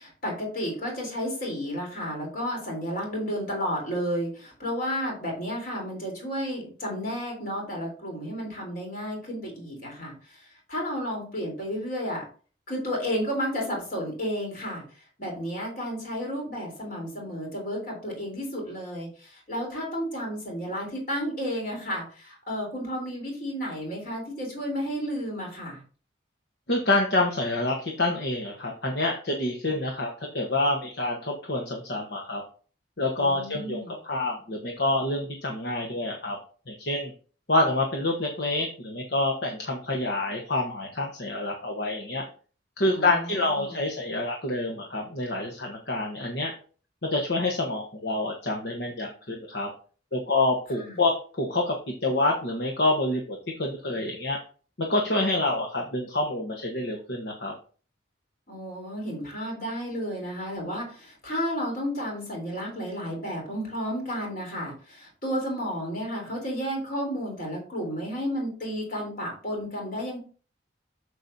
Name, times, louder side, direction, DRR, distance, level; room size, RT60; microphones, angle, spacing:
voice 1, 0.0-12.2 12.7-14.8 15.2-25.8 33.2-33.9 42.9-43.8 50.8-51.0 58.5-70.2, equal, 45° left, 0 dB, 3.9 m, -32 dB
voice 2, 26.7-32.4 33.0-36.4 36.7-37.1 37.5-42.3 42.8-46.5 47.0-49.7 50.1-51.7 52.0-54.4 54.8-57.5, left 2 dB, 65° left, 1 dB, 1.2 m, -27 dB
8.3 x 6.8 x 2.8 m, 0.40 s
head